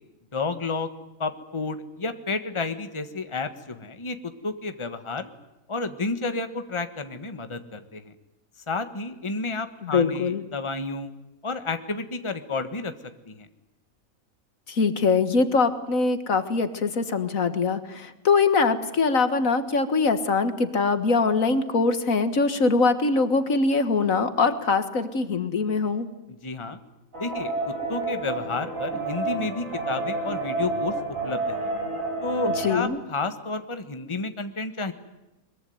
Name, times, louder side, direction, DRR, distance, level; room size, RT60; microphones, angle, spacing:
voice 1, 0.3-0.9 1.2-5.3 5.7-8.1 8.7-11.1 11.4-12.9 13.3-13.5 26.4-26.8 27.2-30.9 31.2-31.6 32.2-34.9, left 3 dB, 20° left, 9 dB, 1.5 m, -31 dB
voice 2, 9.8-10.4 14.7-26.1 32.6-33.0, left 4 dB, 70° left, 10 dB, 2.0 m, -23 dB
sound 1, 27.1-32.8, right 2 dB, 65° right, 8.0 m, -30 dB
22.5 x 22.0 x 9.5 m, 1.0 s
omnidirectional pair, 1.5 m